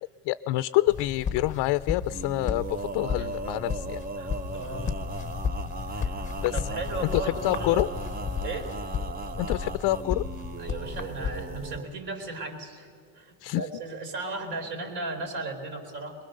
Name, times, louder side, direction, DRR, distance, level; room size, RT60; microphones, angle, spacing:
voice 1, 0.2-4.0 6.4-6.6 7.0-7.9 9.4-10.2 13.4-13.6, left 17 dB, 65° left, 14 dB, 0.5 m, -27 dB
sound 1, 0.9-11.8, left 6 dB, 15° left, 0.7 m, -34 dB
Male singing, 2.1-11.9, right 4 dB, 20° right, 0.5 m, -38 dB
voice 2, 4.2-4.9 6.0-7.9 8.4-8.7 10.6-16.2, right 3 dB, 65° right, 4 dB, 4.3 m, -36 dB
23.5 x 21.5 x 6.6 m, 2.1 s
cardioid pair, 140°, 43 cm